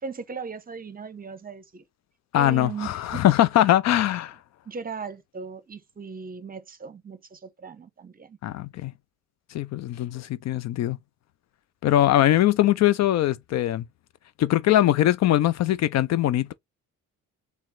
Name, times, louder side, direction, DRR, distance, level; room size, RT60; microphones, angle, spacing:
voice 1, 0.0-1.8 2.3-3.3 4.7-8.4, right 5 dB, 30° right, 0.8 m, -38 dB
voice 2, 2.3-4.4 8.4-8.9 9.5-11.0 11.8-13.8 14.4-16.5, left 13 dB, 60° left, 0.4 m, -21 dB
4.3 x 2.1 x 3.9 m
cardioid pair, 90°, 30 cm